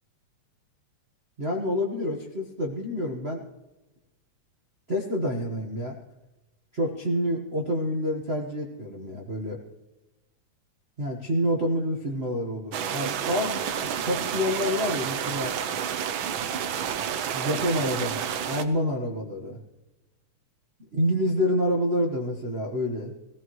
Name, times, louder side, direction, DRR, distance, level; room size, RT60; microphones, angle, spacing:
voice 1, 1.4-3.4 4.9-6.0 6.7-9.6 11.0-13.6 14.0-15.5 17.3-19.6 20.9-23.1, left 1 dB, 55° right, -2 dB, 0.7 m, -28 dB
sound 1, 12.7-18.6, right 8 dB, 90° right, 1.1 m, -30 dB
18.5 x 16.5 x 3.1 m, 1.0 s
omnidirectional pair, 3.3 m